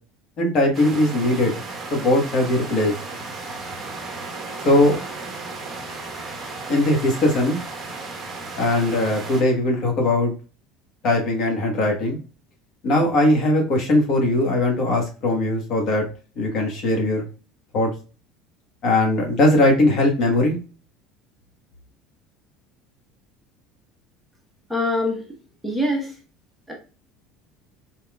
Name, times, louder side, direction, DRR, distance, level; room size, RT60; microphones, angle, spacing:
voice 1, 0.4-1.5 1.9-2.9 4.6-5.0 6.7-7.6 8.6-10.3 11.0-12.2 12.8-16.1 16.4-17.3 17.7-17.9 18.8-20.6, left 1 dB, 50° left, 1 dB, 1.3 m, -20 dB
sound 1, 0.7-9.4, right 3 dB, 20° right, 1.2 m, -34 dB
voice 2, 24.7-25.2 25.6-26.1 26.7-26.8, left 1 dB, ahead, -1 dB, 1.0 m, -23 dB
4.2 x 3.8 x 2.3 m, 0.36 s
cardioid pair, 135°, 0 cm